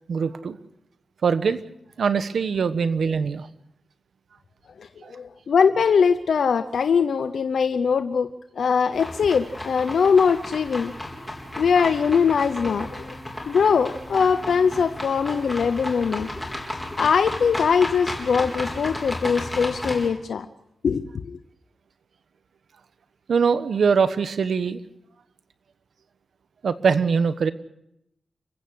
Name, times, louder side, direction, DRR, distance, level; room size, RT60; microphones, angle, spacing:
voice 1, 0.1-0.6 1.2-1.6 2.0-3.5 5.0-5.1 23.3-24.8 26.6-27.5, right 5 dB, 75° right, 12 dB, 1.1 m, -22 dB
voice 2, 4.8-10.9 11.6-13.1 13.5-16.3 17.0-20.5 20.8-21.4, left 6 dB, 90° left, 10 dB, 0.8 m, -21 dB
sound 1, 8.9-20.1, left 1 dB, 10° left, 4.0 m, -34 dB
29.0 x 15.5 x 6.4 m, 0.79 s
wide cardioid pair, 145°, 0 cm